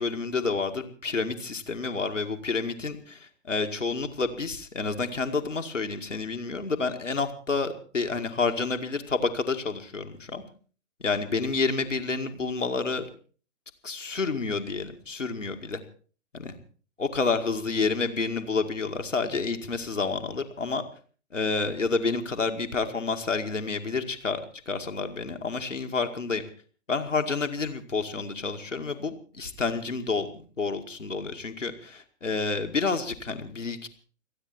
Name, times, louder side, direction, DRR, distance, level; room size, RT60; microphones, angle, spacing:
voice 1, 0.0-10.4 11.0-13.1 13.8-15.8 16.3-16.6 17.0-20.8 21.3-26.4 26.9-33.9, left 4 dB, 75° left, 5 dB, 2.2 m, -29 dB
29.5 x 9.8 x 4.3 m, 0.41 s
figure-of-eight pair, 125°, 38 cm